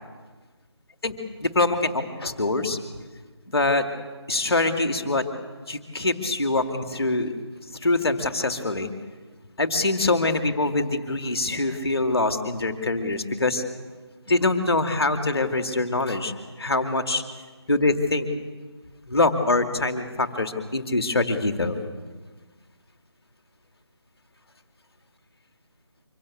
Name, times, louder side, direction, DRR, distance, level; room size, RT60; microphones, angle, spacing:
voice 1, 1.4-2.8 3.5-3.8 4.3-5.2 5.7-7.3 7.8-8.9 9.6-13.6 14.3-17.2 17.7-18.3 19.1-21.7, left 2 dB, 5° left, 5 dB, 1.5 m, -24 dB
24.5 x 16.5 x 8.5 m, 1.4 s
figure-of-eight pair, 180°, 14 cm